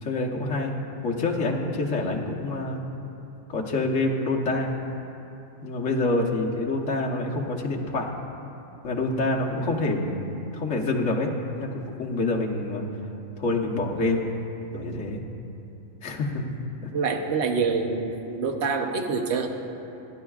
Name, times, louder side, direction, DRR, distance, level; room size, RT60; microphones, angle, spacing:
voice 1, 0.0-2.8 3.5-4.7 5.6-8.1 8.8-12.8 13.4-14.3 14.7-15.2 16.0-16.4 16.8-16.9, left 2 dB, 65° left, -1 dB, 1.5 m, -27 dB
voice 2, 16.9-19.5, right 4 dB, 55° right, 4 dB, 1.1 m, -26 dB
21.5 x 11.0 x 2.4 m, 2.9 s
omnidirectional pair, 1.4 m